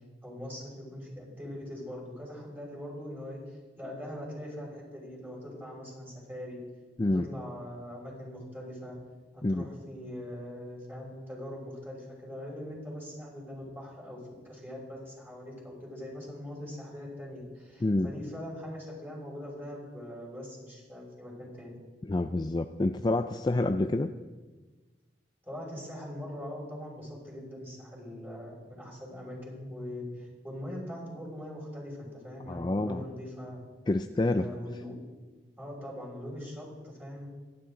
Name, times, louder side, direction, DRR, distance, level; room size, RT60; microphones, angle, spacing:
voice 1, 0.2-6.6 7.1-9.0 9.3-21.8 25.4-33.6 34.4-34.9 35.6-37.3, left 1 dB, 10° right, -5 dB, 6.2 m, -42 dB
voice 2, 17.8-18.1 22.1-24.1 32.5-33.0 33.9-34.5, left 2 dB, 25° left, 8 dB, 0.4 m, -28 dB
27.5 x 11.5 x 3.9 m, 1.3 s
head